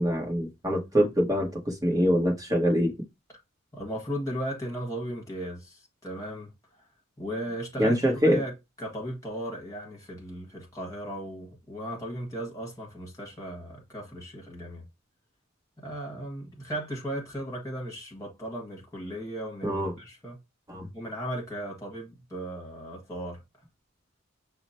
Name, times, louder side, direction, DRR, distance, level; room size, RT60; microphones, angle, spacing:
voice 1, 0.0-2.9 7.8-8.4 19.6-19.9 20.7-20.9, equal, 15° right, 1.1 m, -24 dB
voice 2, 3.7-6.5 7.2-8.5 8.8-14.9 15.8-20.4 20.9-23.4, equal, 15° left, 1.5 m, -36 dB
5.9 x 2.1 x 4.1 m
head